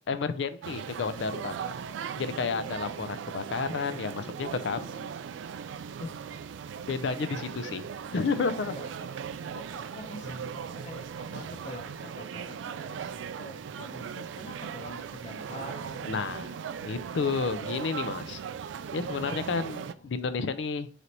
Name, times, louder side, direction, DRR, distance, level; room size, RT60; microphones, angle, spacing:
voice 1, 0.1-1.5 2.2-5.1 6.9-7.8 8.1-8.7 16.1-18.4 18.9-20.9, left 4 dB, 75° left, 11 dB, 0.4 m, -31 dB
sound 1, 0.6-19.9, right 7 dB, 85° right, 0.3 m, -38 dB
voice 2, 9.5-16.1 20.0-20.1, left 2 dB, 40° left, 4 dB, 0.7 m, -45 dB
4.0 x 3.3 x 2.9 m, 0.43 s
head